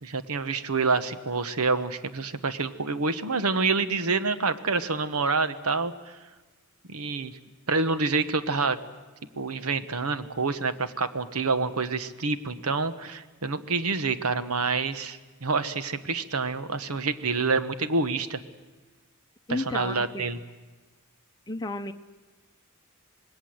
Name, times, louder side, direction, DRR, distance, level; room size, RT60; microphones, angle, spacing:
voice 1, 0.0-6.2 6.9-7.3 7.7-8.8 9.4-18.4 19.5-20.4, right 4 dB, 80° right, 12 dB, 1.2 m, -27 dB
voice 2, 19.5-20.2 21.5-21.9, left 2 dB, 20° left, 5 dB, 0.8 m, -32 dB
26.5 x 20.0 x 7.8 m, 1.3 s
head